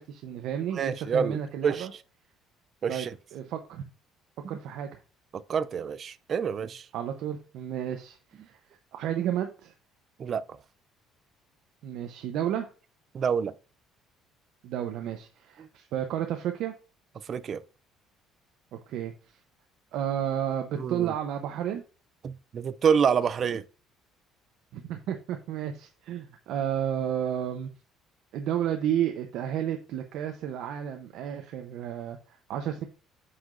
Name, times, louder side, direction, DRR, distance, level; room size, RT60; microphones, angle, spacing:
voice 1, 0.0-1.9 2.9-3.8 4.5-5.0 6.9-8.6 8.9-9.7 11.8-12.7 14.6-16.7 18.7-19.1 19.9-21.8 24.7-27.7 28.3-32.2 32.5-32.8, right 10 dB, 65° right, 0.7 m, -32 dB
voice 2, 0.7-1.9 2.8-3.1 5.5-6.9 10.2-10.6 13.1-13.5 15.6-15.7 17.3-17.6 20.8-21.1 22.2-23.6, right 7 dB, 35° right, 0.4 m, -27 dB
7.7 x 5.7 x 2.5 m
cardioid pair, 160°, 0 cm